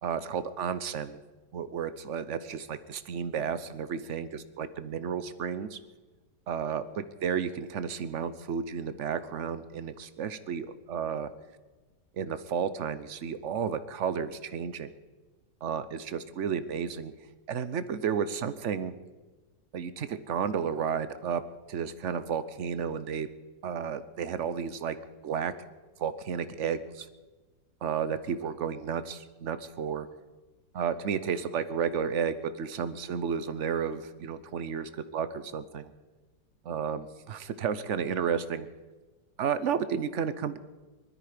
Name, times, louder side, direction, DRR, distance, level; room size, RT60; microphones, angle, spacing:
voice 1, 0.0-1.2 1.5-5.8 6.5-11.3 12.2-14.9 15.6-17.1 17.5-18.9 19.7-21.4 21.7-23.3 23.6-25.0 25.2-25.5 26.0-27.1 27.8-30.1 30.7-35.9 36.7-38.7 39.4-40.6, right 7 dB, 55° right, 13 dB, 0.9 m, -32 dB
20.5 x 13.0 x 5.0 m, 1.2 s
omnidirectional pair, 1.8 m